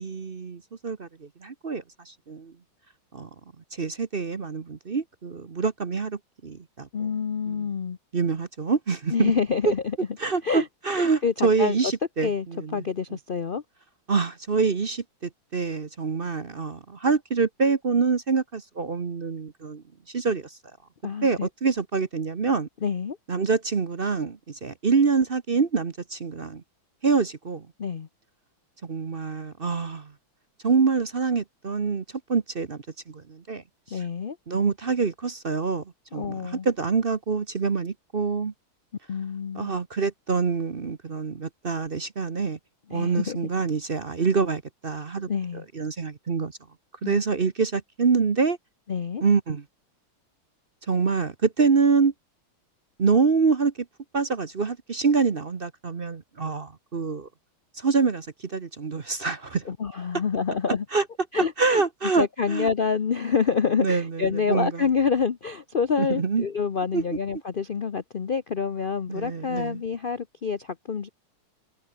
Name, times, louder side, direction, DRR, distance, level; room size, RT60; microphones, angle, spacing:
voice 1, 0.0-2.5 3.1-3.3 3.8-6.9 7.5-7.6 8.1-9.3 10.2-12.8 14.1-15.0 15.5-19.8 20.1-20.6 21.2-22.7 23.3-26.6 27.0-27.7 28.8-30.1 30.6-32.0 32.3-32.8 33.1-33.6 33.9-34.0 34.5-35.8 36.1-38.5 39.5-42.6 42.9-45.3 45.7-46.5 47.0-48.6 49.2-49.6 50.9-52.1 53.0-53.7 54.1-57.3 57.8-59.6 60.9-61.0 61.6-62.7 63.8-64.8 66.0-66.4 66.9-67.0 69.1-69.8, right 5 dB, 35° right, 0.9 m, -25 dB
voice 2, 6.9-8.0 9.1-10.0 10.4-10.7 11.0-11.9 12.2-12.5 12.7-13.6 21.0-21.5 22.8-23.2 27.8-28.1 33.9-34.4 36.1-36.7 39.1-39.7 42.9-43.4 45.3-45.7 47.0-47.2 48.9-49.2 59.6-60.8 61.3-61.8 62.2-71.1, left 6 dB, 80° left, 0.4 m, -27 dB
omnidirectional pair, 2.2 m